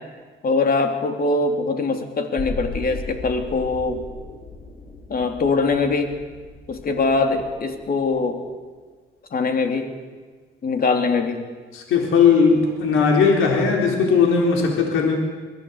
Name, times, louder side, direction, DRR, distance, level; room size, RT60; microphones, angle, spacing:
voice 1, 0.4-4.0 5.1-6.1 6.7-8.4 9.3-9.9 10.6-11.4, left 3 dB, 50° left, 5 dB, 3.1 m, -22 dB
sound 1, 2.4-8.3 8.7-8.8, left 2 dB, 30° left, 5.2 m, -37 dB
voice 2, 11.7-15.1, left 5 dB, 85° left, 1 dB, 3.9 m, -18 dB
23.0 x 16.0 x 8.1 m, 1.5 s
cardioid pair, 90°, 20 cm